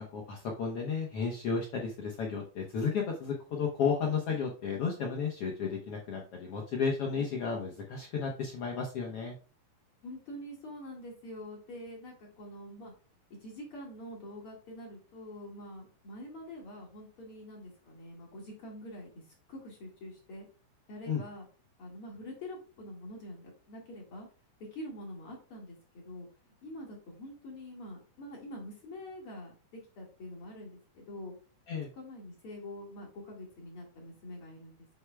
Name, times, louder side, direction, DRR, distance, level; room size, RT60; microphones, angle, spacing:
voice 1, 0.1-9.4 21.1-21.2 31.7-31.9, left 5 dB, 80° left, 0 dB, 1.3 m, -33 dB
voice 2, 10.0-12.9 13.4-19.2 19.5-20.5 20.9-21.5 21.8-24.3 24.7-26.3 26.6-31.3 32.0-34.9, left 1 dB, 45° left, -2 dB, 2.3 m, -45 dB
8.0 x 7.1 x 2.3 m, 0.38 s
omnidirectional pair, 4.2 m